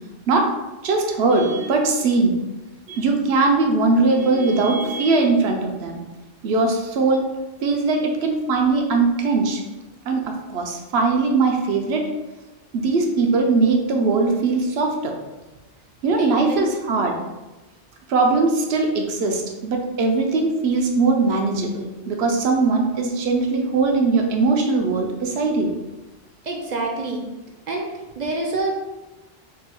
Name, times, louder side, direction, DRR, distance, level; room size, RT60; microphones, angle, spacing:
voice 1, 0.8-2.3 2.9-6.0 6.4-7.3 7.6-9.6 10.1-12.1 12.7-15.1 16.0-17.2 18.1-25.7, right 3 dB, 85° right, 2 dB, 0.9 m, -20 dB
voice 2, 16.2-16.6 16.9-17.0 26.5-27.2 27.7-27.9 28.2-28.7, right 2 dB, 55° right, 1 dB, 0.6 m, -27 dB
3.7 x 2.3 x 4.3 m, 1.1 s
omnidirectional pair, 1.0 m